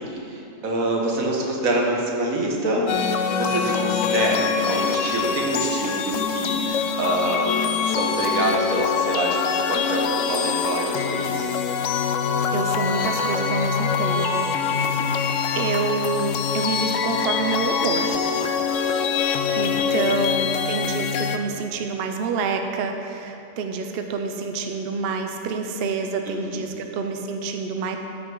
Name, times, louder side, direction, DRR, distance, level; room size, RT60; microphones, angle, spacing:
voice 1, 0.1-11.5 14.3-15.0 19.8-20.2 26.2-26.9, right 1 dB, 80° right, -1 dB, 1.6 m, -26 dB
sound 1, 2.9-21.4, left 6 dB, 70° left, 0.9 m, -24 dB
voice 2, 12.5-14.5 15.0-15.2 15.5-18.1 19.5-28.0, right 4 dB, 55° right, 4 dB, 0.7 m, -27 dB
13.5 x 6.0 x 3.8 m, 2.9 s
omnidirectional pair, 1.4 m